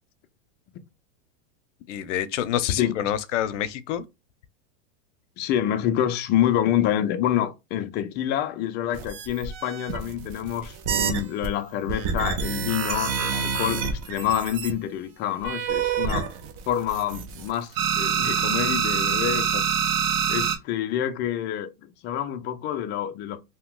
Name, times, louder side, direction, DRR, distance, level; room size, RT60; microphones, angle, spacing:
voice 1, 1.9-4.0, left 10 dB, 80° left, 0.6 m, -27 dB
voice 2, 2.7-3.1 5.4-16.3 16.7-19.7 20.3-23.4, left 11 dB, 30° left, 0.4 m, -27 dB
sound 1, 8.9-11.5 11.9-14.7 15.4-17.5 17.7-20.6, right 7 dB, 35° right, 0.6 m, -27 dB
2.8 x 2.3 x 3.7 m
supercardioid pair, 140°, 36 cm